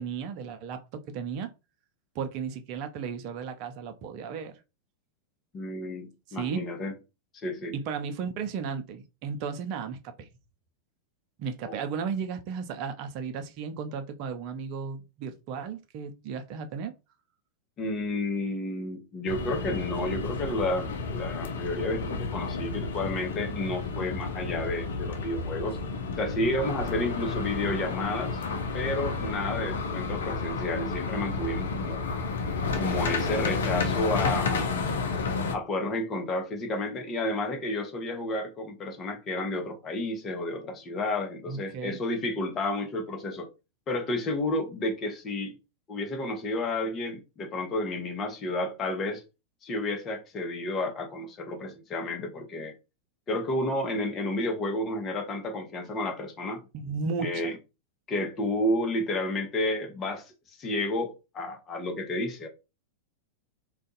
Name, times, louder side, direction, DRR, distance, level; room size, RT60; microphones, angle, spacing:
voice 1, 0.0-1.5 2.1-4.6 6.3-6.6 7.7-10.3 11.4-16.9 41.5-42.0 56.7-57.5, right 6 dB, 45° right, 0.6 m, -34 dB
voice 2, 5.5-6.9 7.3-7.8 11.6-11.8 17.8-25.8 26.2-28.4 28.7-32.0 32.8-34.7 35.5-43.5 43.9-45.5 45.9-49.2 49.6-52.7 53.3-56.6 57.2-57.5 58.1-62.5, left 1 dB, 30° left, 1.0 m, -31 dB
sound 1, 19.3-35.6, left 4 dB, 70° left, 0.6 m, -31 dB
2.5 x 2.4 x 3.9 m
figure-of-eight pair, 95°, 0 cm